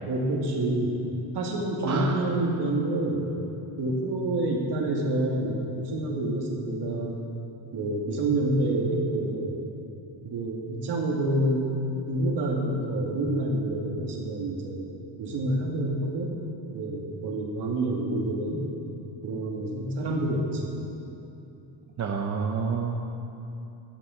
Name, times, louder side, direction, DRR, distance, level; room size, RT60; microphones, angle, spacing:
voice 1, 0.1-1.0 1.3-3.4 3.8-7.1 7.7-9.6 10.2-11.7 12.1-14.9 15.2-16.4 16.7-18.7 19.2-20.8, right 1 dB, 60° right, -1 dB, 2.3 m, -28 dB
voice 2, 1.8-2.2 22.0-23.0, right 5 dB, 35° right, 2 dB, 0.8 m, -29 dB
13.0 x 7.7 x 7.1 m, 2.8 s
cardioid pair, 120°, 47 cm